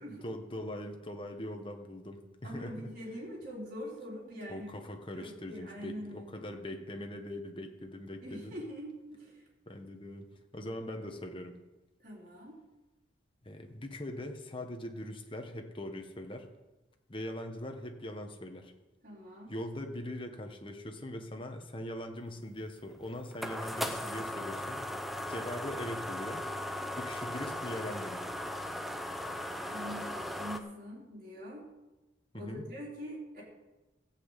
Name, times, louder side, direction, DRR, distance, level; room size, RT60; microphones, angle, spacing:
voice 1, 0.2-2.9 4.5-8.6 9.7-10.3 10.5-11.6 13.4-16.5 17.1-18.7 19.5-24.8 25.3-26.4 26.9-28.2 32.3-32.6, left 1 dB, 25° left, 4 dB, 1.3 m, -41 dB
voice 2, 2.4-4.7 5.1-6.5 8.2-9.4 12.0-12.6 19.0-19.5 29.7-31.7 32.3-33.4, equal, 45° right, -6 dB, 4.2 m, -43 dB
sound 1, 22.6-30.6, left 1 dB, ahead, 0.7 m, -38 dB
14.5 x 6.0 x 8.3 m, 1.0 s
head